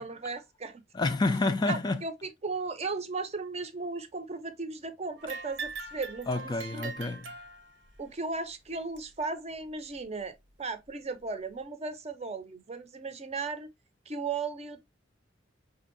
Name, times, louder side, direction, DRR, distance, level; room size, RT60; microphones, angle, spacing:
voice 1, 0.0-0.8 1.7-6.9 8.0-13.7 14.1-14.8, right 4 dB, 35° right, 0.6 m, -36 dB
voice 2, 0.9-2.0 6.3-7.3, left 2 dB, 20° left, 0.3 m, -28 dB
sound 1, 5.2-8.0 9.0-9.1 9.9-10.0 10.9-11.0, right 4 dB, 70° right, 0.9 m, -41 dB
5.0 x 2.7 x 2.5 m
head